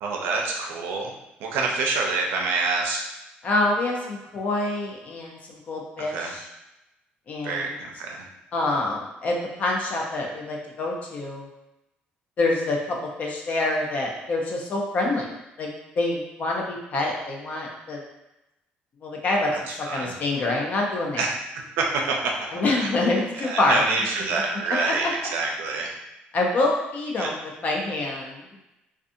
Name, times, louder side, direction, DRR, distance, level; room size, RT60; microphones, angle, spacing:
voice 1, 0.0-1.1 1.4-3.0 6.1-6.3 7.4-8.3 19.5-20.1 21.2-21.3 21.8-22.2 22.8-22.9 23.3-25.9 27.2-27.3, right 3 dB, 85° right, 0 dB, 0.5 m, -27 dB
voice 2, 3.4-6.5 7.3-7.7 8.5-11.5 12.4-15.3 15.6-15.7 16.0-18.0 19.0-21.2 22.5-23.8 24.8-25.1 26.3-28.7, left 2 dB, 45° left, -1 dB, 0.5 m, -26 dB
2.6 x 2.3 x 2.6 m, 0.92 s
cardioid pair, 145°, 4 cm